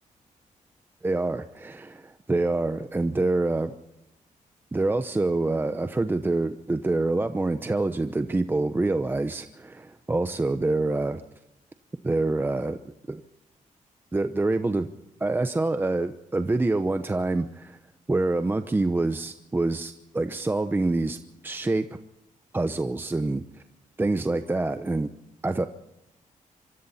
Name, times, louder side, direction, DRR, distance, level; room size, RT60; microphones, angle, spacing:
voice 1, 1.0-3.7 4.7-11.2 12.0-12.8 13.1-13.2 14.1-14.9 15.2-17.8 18.1-21.2 21.4-21.9 22.5-23.4 24.0-25.1 25.4-25.7, right 2 dB, 15° right, 9 dB, 0.8 m, -26 dB
25.5 x 24.5 x 4.3 m, 0.84 s
wide cardioid pair, 140°, 14 cm